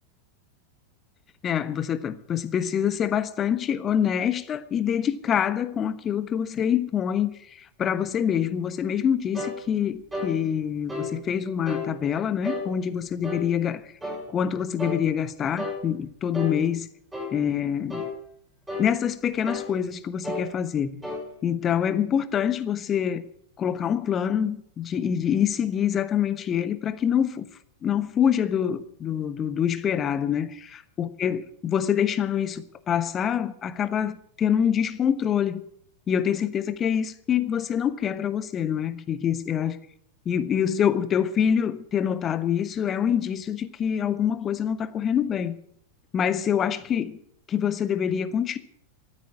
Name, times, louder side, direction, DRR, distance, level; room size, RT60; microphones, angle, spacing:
voice 1, 1.4-13.8 14.3-16.9 17.3-18.1 18.8-20.9 21.4-23.2 23.6-27.4 27.8-35.6 36.1-39.8 40.2-45.6 46.1-47.2 47.5-48.6, left 8 dB, 25° left, 1.2 m, -25 dB
sound 1, 9.3-9.6 10.1-10.3 10.9-11.1 11.6-11.9 12.4-12.7 13.2-13.5 14.0-14.2 14.8-15.0 15.6-15.8 16.3-16.6 17.1-17.3 17.9-18.1 18.7-18.9 19.4-19.7 20.2-20.5 21.0-21.2, left 2 dB, 10° right, 6.9 m, -31 dB
14.5 x 9.1 x 9.2 m
figure-of-eight pair, 90°, 0 cm